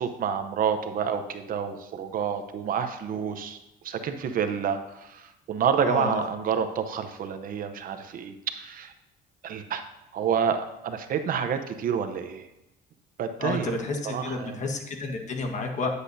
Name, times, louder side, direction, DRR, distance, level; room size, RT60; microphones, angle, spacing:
voice 1, 0.0-3.6 3.8-8.9 9.4-9.8 10.1-12.5 13.2-13.8 14.0-14.7, right 7 dB, 55° right, 8 dB, 0.8 m, -29 dB
voice 2, 5.8-6.2 13.4-15.9, left 3 dB, 45° left, 3 dB, 1.4 m, -30 dB
9.9 x 8.1 x 2.7 m, 0.90 s
cardioid pair, 110°, 17 cm